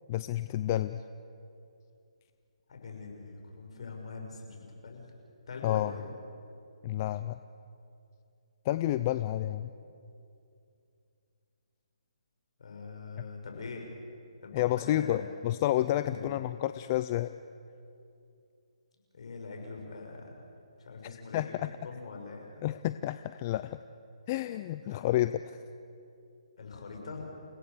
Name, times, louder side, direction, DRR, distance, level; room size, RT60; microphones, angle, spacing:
voice 1, 0.1-1.0 5.6-5.9 6.8-7.4 8.6-9.7 13.2-13.3 14.5-17.3 21.3-21.7 22.6-23.8 24.3-25.6, left 13 dB, 25° left, 12 dB, 0.4 m, -30 dB
voice 2, 2.7-4.6 4.8-5.0 5.5-6.1 12.6-13.9 14.4-15.4 16.0-16.4 19.1-20.3 20.8-22.7 24.9-25.1 26.6-27.3, left 4 dB, 55° left, 1 dB, 5.9 m, -43 dB
30.0 x 17.0 x 6.8 m, 2.5 s
hypercardioid pair, 155°, 4 cm